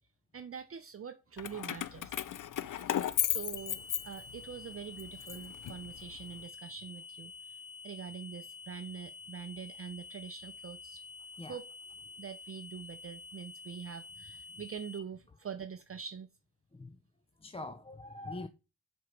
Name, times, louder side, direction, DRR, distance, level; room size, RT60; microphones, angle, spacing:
voice 1, 0.3-2.2 2.9-11.0 11.5-11.7 12.2-16.3, right 7 dB, 45° right, 0.6 m, -45 dB
Keys jangling, 1.4-4.5 5.0-6.3, left 11 dB, 85° left, 0.5 m, -35 dB
sound 1, 3.6-15.0, left 4 dB, 40° left, 2.1 m, -49 dB
voice 2, 17.4-18.5, left 2 dB, 20° left, 0.5 m, -43 dB
7.8 x 4.5 x 5.1 m
wide cardioid pair, 115°, 30 cm